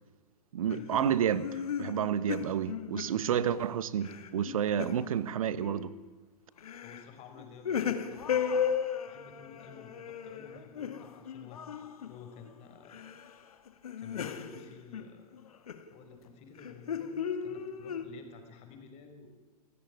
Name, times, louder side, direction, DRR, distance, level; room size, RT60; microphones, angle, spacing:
voice 1, 0.5-5.9, right 9 dB, 55° right, 1.4 m, -30 dB
sound 1, 0.7-3.6 4.0-5.1 5.6-6.0 6.6-7.0 7.4-12.5 12.8-13.3 13.7-15.9 16.6-18.0, left 7 dB, 65° left, 2.2 m, -36 dB
voice 2, 3.1-3.7 6.8-8.7 9.1-13.1 14.0-15.4 15.9-19.3, left 5 dB, 30° left, 5.5 m, -52 dB
28.5 x 17.0 x 9.8 m
figure-of-eight pair, 105°, 21 cm